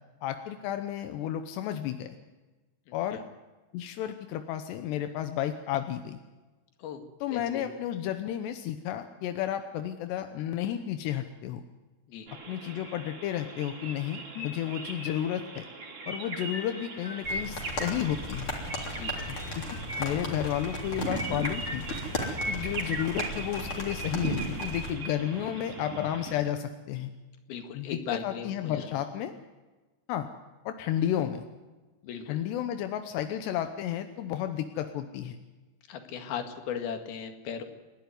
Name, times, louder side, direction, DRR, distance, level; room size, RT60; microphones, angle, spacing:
voice 1, 0.2-2.2 2.9-3.2 3.7-6.2 7.2-11.6 12.5-15.7 16.1-18.5 19.6-21.9 22.5-27.1 27.7-29.3 30.1-30.3 30.7-31.4 32.3-35.4, left 11 dB, 85° left, 8 dB, 3.1 m, -32 dB
voice 2, 2.9-3.2 6.8-7.0 7.3-7.7 12.1-12.3 18.9-19.1 27.5-29.0 32.0-32.4 35.9-37.6, left 7 dB, 65° left, 6 dB, 3.7 m, -37 dB
sound 1, 12.3-26.3, right 2 dB, 35° right, 3.5 m, -38 dB
sound 2, 17.2-24.9, left 1 dB, 35° left, 3.9 m, -37 dB
29.5 x 12.0 x 9.6 m, 1.2 s
omnidirectional pair, 4.8 m